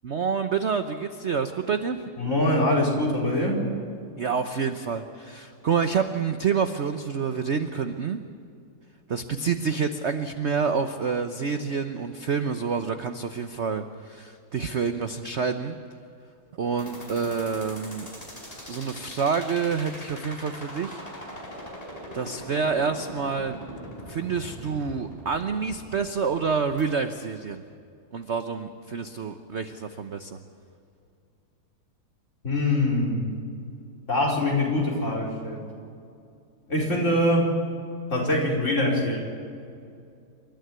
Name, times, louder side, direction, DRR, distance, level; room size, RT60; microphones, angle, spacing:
voice 1, 0.0-2.0 4.2-8.2 9.1-15.8 16.6-18.1 18.7-21.0 22.1-23.6 24.1-27.6 28.1-30.4, right 5 dB, 50° right, 8 dB, 0.9 m, -28 dB
voice 2, 2.2-3.6 32.4-33.2 34.1-35.6 36.7-37.5 38.1-39.2, left 1 dB, 35° left, -2 dB, 5.2 m, -23 dB
sound 1, 16.8-26.8, equal, 20° left, 5.0 m, -41 dB
28.0 x 13.0 x 9.5 m, 2.5 s
omnidirectional pair, 2.1 m